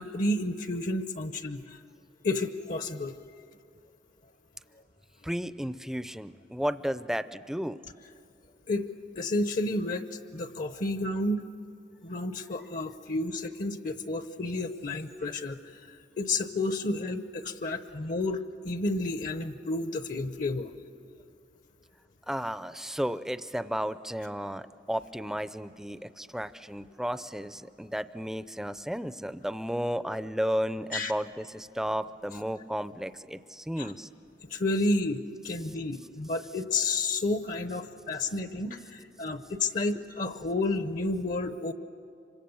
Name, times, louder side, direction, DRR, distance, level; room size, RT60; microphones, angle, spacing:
voice 1, 0.0-1.8 2.2-3.2 8.7-8.9 9.2-10.0 10.3-11.5 12.0-15.6 16.2-20.7 30.9-31.1 33.8-33.9 34.4-41.7, left 2 dB, 50° left, 10 dB, 0.8 m, -31 dB
voice 2, 5.2-7.8 22.3-34.1, equal, 5° right, 13 dB, 0.5 m, -33 dB
26.0 x 25.0 x 7.1 m, 2.5 s
head